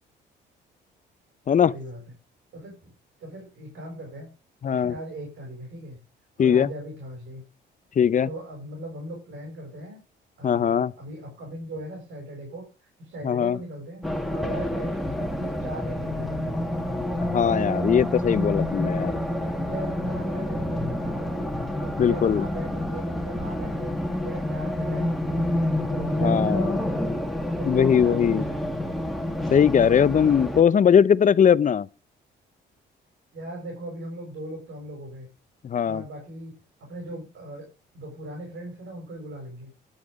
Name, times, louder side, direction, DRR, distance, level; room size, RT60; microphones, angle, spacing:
voice 1, 1.7-2.0 2.5-2.9 3.2-4.3 4.6-6.0 6.4-7.4 8.2-10.0 10.4-14.0 14.3-16.7 19.5-21.5 21.7-23.9 24.2-27.1 27.5-28.9 33.3-35.3 35.8-36.5 36.8-37.7 37.9-39.7, right 1 dB, 70° right, 6.5 m, -38 dB
voice 2, 4.6-4.9 6.4-6.7 8.0-8.3 10.4-10.9 13.2-13.6 17.2-19.2 22.0-22.4 26.2-26.8 27.7-28.4 29.5-31.9 35.6-36.0, left 8 dB, 40° left, 0.7 m, -20 dB
Race car auto racing, 14.0-30.6, left 1 dB, ahead, 2.0 m, -28 dB
12.0 x 7.9 x 5.2 m
cardioid pair, 90°, 20 cm